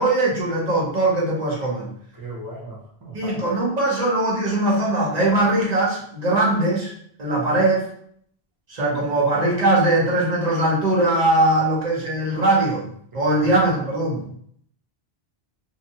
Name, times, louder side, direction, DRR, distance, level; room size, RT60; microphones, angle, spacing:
voice 1, 0.0-1.9 3.1-6.9 7.2-7.8 8.7-12.8 13.1-14.2, right 2 dB, 40° right, -4 dB, 1.0 m, -20 dB
voice 2, 2.1-3.4 11.5-11.7 13.1-13.5, right 2 dB, 20° right, -3 dB, 0.7 m, -37 dB
2.8 x 2.3 x 2.7 m, 0.64 s
omnidirectional pair, 1.1 m